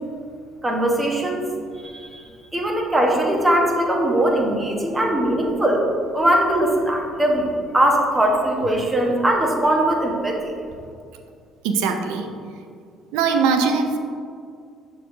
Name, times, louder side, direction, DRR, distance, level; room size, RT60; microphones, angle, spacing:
voice 1, 0.6-1.4 1.8-2.2 2.5-5.8 6.1-10.4, right 1 dB, 15° right, -1 dB, 1.2 m, -20 dB
voice 2, 11.6-12.3 13.1-14.1, right 5 dB, 65° right, 5 dB, 0.5 m, -21 dB
6.5 x 3.9 x 3.8 m, 2.3 s
figure-of-eight pair, 50°, 0 cm